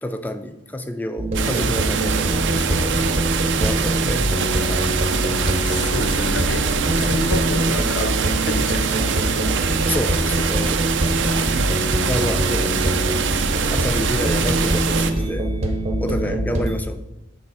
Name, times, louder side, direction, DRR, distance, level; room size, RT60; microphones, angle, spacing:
voice 1, 0.0-4.2 4.6-5.0 7.0-7.2 9.8-10.9 11.3-11.5 12.1-12.8 13.7-15.5 16.0-17.0, left 1 dB, 10° left, 10 dB, 0.4 m, -29 dB
sound 1, 1.2-16.8, right 1 dB, 35° right, 0.9 m, -23 dB
sound 2, 1.3-15.1, right 7 dB, 85° right, 0.5 m, -24 dB
voice 2, 4.0-4.4 5.0-9.6 11.3-11.9 16.2-16.4, left 3 dB, 80° left, 10 dB, 0.6 m, -31 dB
7.1 x 4.0 x 4.9 m, 0.96 s
head